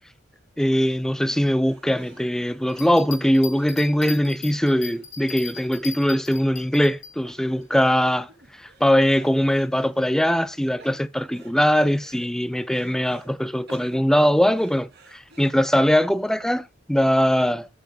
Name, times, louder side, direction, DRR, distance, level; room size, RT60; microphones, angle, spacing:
voice 1, 0.6-8.3 8.6-17.7, equal, 5° left, 0.4 m, -21 dB
sound 1, 0.8-1.0 1.3-6.5 6.8-6.9 7.2-7.8 8.1-8.9 9.2-10.0 10.4-11.5 11.8-13.3 13.7-15.8, right 3 dB, 60° right, 2.7 m, -52 dB
Bell, 2.7-7.1 7.6-7.7, left 7 dB, 80° left, 2.4 m, -38 dB
13.0 x 5.0 x 3.8 m
head